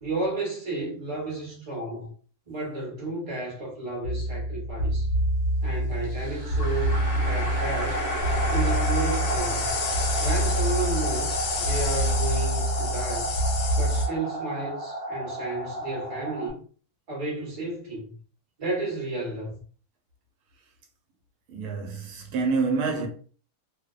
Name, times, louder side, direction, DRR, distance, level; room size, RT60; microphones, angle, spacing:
voice 1, 0.0-2.1 2.5-5.1 5.6-8.0 8.5-9.8 10.2-13.3 13.8-16.6 17.1-18.2 18.6-19.5, right 2 dB, 25° right, 0.9 m, -32 dB
sound 1, 4.0-14.1, equal, 75° left, 1.1 m, -26 dB
sound 2, 6.0-16.5, right 1 dB, 55° right, 0.5 m, -33 dB
voice 2, 21.5-23.1, right 4 dB, 85° right, 1.2 m, -27 dB
2.7 x 2.0 x 2.3 m
omnidirectional pair, 1.7 m